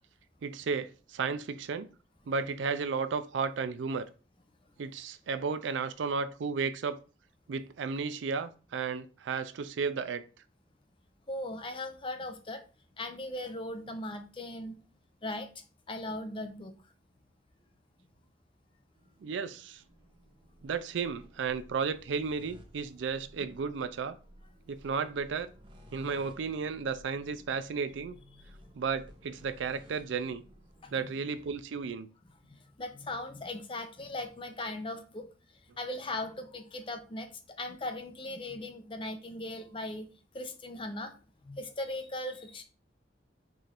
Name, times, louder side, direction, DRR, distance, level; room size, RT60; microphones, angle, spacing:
voice 1, 0.4-1.9 2.3-4.1 4.8-7.0 7.5-10.2 19.2-19.8 20.6-24.2 24.7-25.5 25.9-28.2 28.7-30.4 30.9-32.1, right 5 dB, 85° right, 0.4 m, -33 dB
voice 2, 11.3-12.6 13.0-14.8 15.2-16.7 30.8-31.1 32.5-35.3 35.8-37.3 37.6-40.1 40.3-42.6, left 1 dB, 30° left, 0.6 m, -39 dB
sound 1, 18.9-31.6, equal, 30° right, 0.8 m, -56 dB
4.8 x 2.5 x 4.2 m
head